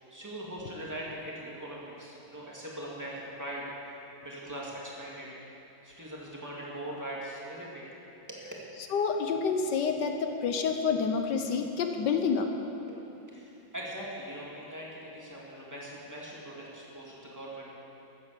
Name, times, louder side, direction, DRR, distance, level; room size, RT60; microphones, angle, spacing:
voice 1, 0.1-3.6 4.2-5.3 5.8-7.9 8.3-8.4 12.9-17.8, right 1 dB, 10° right, -5 dB, 2.6 m, -41 dB
voice 2, 8.9-12.5, left 5 dB, 65° left, 5 dB, 1.5 m, -28 dB
15.5 x 9.6 x 6.9 m, 2.9 s
omnidirectional pair, 2.2 m